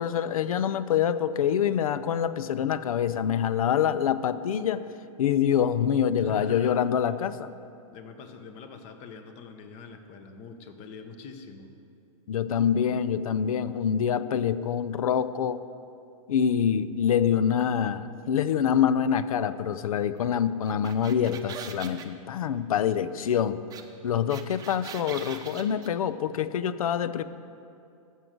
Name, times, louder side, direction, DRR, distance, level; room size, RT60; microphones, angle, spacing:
voice 1, 0.0-4.8 5.2-7.5 12.3-15.6 16.3-23.6 24.0-27.2, left 8 dB, 80° left, 15 dB, 0.5 m, -25 dB
voice 2, 6.2-6.8 7.9-11.7, left 5 dB, 40° left, 7 dB, 1.1 m, -44 dB
sound 1, 20.7-22.1 23.7-23.8 24.1-25.9, right 7 dB, 20° right, 0.7 m, -41 dB
14.0 x 6.3 x 5.2 m, 2.5 s
hypercardioid pair, 125°, 18 cm